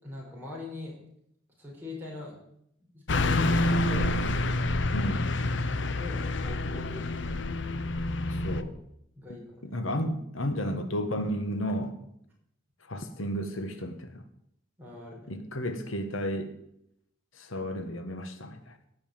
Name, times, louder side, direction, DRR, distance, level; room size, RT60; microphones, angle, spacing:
voice 1, 0.0-1.0 1.6-2.3 2.8-4.1 5.6-7.6 9.1-9.8 14.8-15.3, left 2 dB, 10° right, -4 dB, 5.1 m, -42 dB
Car passing by / Truck, 3.1-8.6, left 2 dB, 65° left, 0.8 m, -27 dB
voice 2, 4.9-5.3 8.4-8.7 9.6-12.0 12.8-14.2 15.3-16.6 17.3-18.8, equal, 90° left, 8 dB, 1.5 m, -33 dB
16.5 x 5.7 x 8.8 m, 0.76 s
head